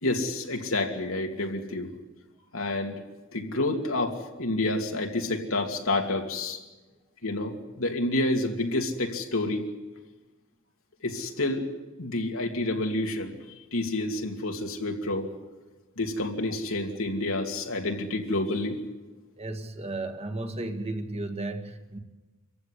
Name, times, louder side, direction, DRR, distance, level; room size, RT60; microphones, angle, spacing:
voice 1, 0.0-1.9 2.5-3.0 3.3-6.6 7.2-9.7 11.0-11.7 12.0-13.4 13.7-15.3 16.0-18.8, left 2 dB, 85° left, 2 dB, 2.7 m, -29 dB
voice 2, 19.4-22.0, right 2 dB, 30° right, 6 dB, 1.7 m, -34 dB
26.0 x 15.0 x 9.8 m, 1.2 s
head